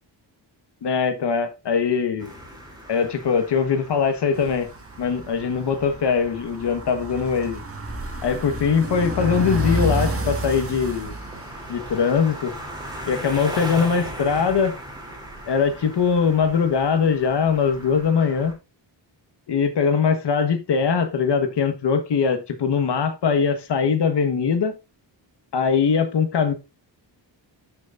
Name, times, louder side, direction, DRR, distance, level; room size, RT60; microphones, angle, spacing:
voice 1, 0.8-2.3 2.9-4.7 5.0-7.6 8.2-11.1 11.7-12.5 13.0-14.8 15.4-18.6 19.5-24.7 25.5-26.5, left 6 dB, 65° left, 1.6 m, -21 dB
sound 1, 2.2-18.5, equal, 10° right, 3.3 m, -39 dB
sound 2, 4.4-13.2 13.6-13.7 13.9-15.7 16.1-16.8 17.1-17.2 17.8-17.9, equal, 30° right, 1.9 m, -31 dB
13.0 x 6.2 x 2.6 m
wide cardioid pair, 150°, 44 cm